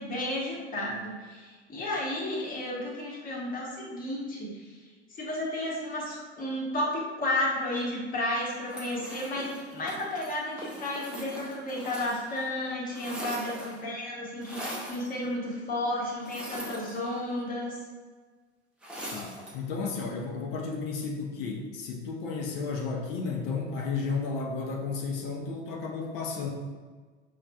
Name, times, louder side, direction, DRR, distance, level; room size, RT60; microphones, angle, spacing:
voice 1, 0.0-4.6 5.2-17.8, left 1 dB, 25° left, -4 dB, 1.0 m, -32 dB
sound 1, 8.7-12.4 12.7-13.9 14.4-15.1 16.2-17.4 18.8-19.6, right 1 dB, 5° right, 0.4 m, -41 dB
voice 2, 19.1-26.5, left 4 dB, 50° left, 0 dB, 0.6 m, -33 dB
4.9 x 2.3 x 2.2 m, 1.4 s
figure-of-eight pair, 90°, 34 cm